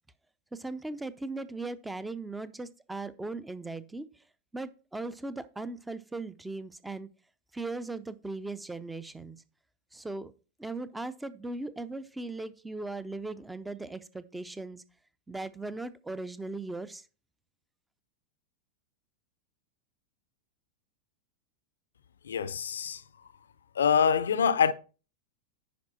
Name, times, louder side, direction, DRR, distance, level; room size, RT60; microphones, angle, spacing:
voice 1, 0.5-4.1 4.5-7.1 7.5-9.4 9.9-10.3 10.6-14.8 15.3-17.0, right 2 dB, 5° right, 0.6 m, -38 dB
voice 2, 22.2-23.0 23.8-24.7, left 7 dB, 65° left, 0.5 m, -25 dB
10.5 x 4.8 x 4.2 m
figure-of-eight pair, 90°, 0 cm